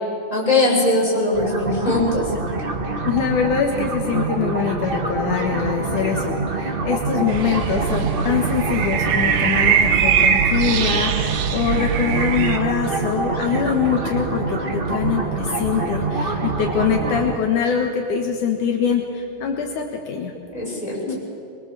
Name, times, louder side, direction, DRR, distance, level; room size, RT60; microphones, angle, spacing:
voice 1, 0.3-2.3 20.5-21.0, left 2 dB, 10° left, -6 dB, 7.6 m, -20 dB
sound 1, 1.3-17.3, right 3 dB, 30° right, 0.9 m, -26 dB
voice 2, 3.0-20.3 21.0-21.2, left 7 dB, 70° left, 1 dB, 2.9 m, -23 dB
sound 2, 7.3-12.6, right 7 dB, 75° right, 2.7 m, -21 dB
24.5 x 22.5 x 7.5 m, 2.4 s
omnidirectional pair, 3.7 m